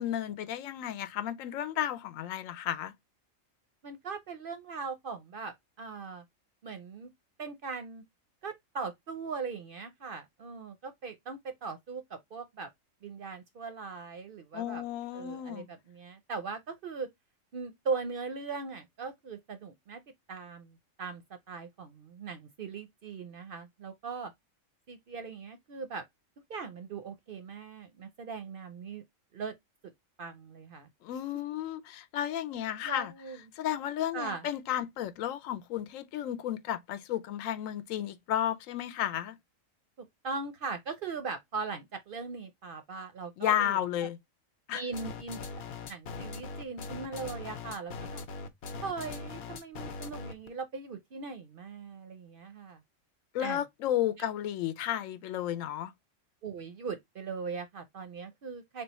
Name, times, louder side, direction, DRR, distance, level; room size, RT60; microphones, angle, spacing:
voice 1, 0.0-2.9 14.5-15.7 31.0-33.1 33.6-39.3 43.4-44.2 44.7-44.8 53.3-55.9, left 11 dB, 80° left, 1.0 m, -33 dB
voice 2, 3.8-6.2 6.6-7.1 7.4-8.0 8.4-12.7 13.0-14.8 15.1-17.1 17.5-20.0 20.3-21.2 21.5-24.3 24.9-26.0 26.5-29.0 29.3-29.5 29.8-29.9 30.2-30.9 32.9-33.4 34.1-34.5 40.2-43.8 44.7-45.4 45.9-48.2 48.8-52.8 53.4-53.6 54.2-54.3 56.4-58.8, right 4 dB, 60° right, 0.6 m, -39 dB
sound 1, 44.9-50.5, left 4 dB, 60° left, 0.8 m, -41 dB
3.6 x 2.2 x 4.0 m
omnidirectional pair, 1.3 m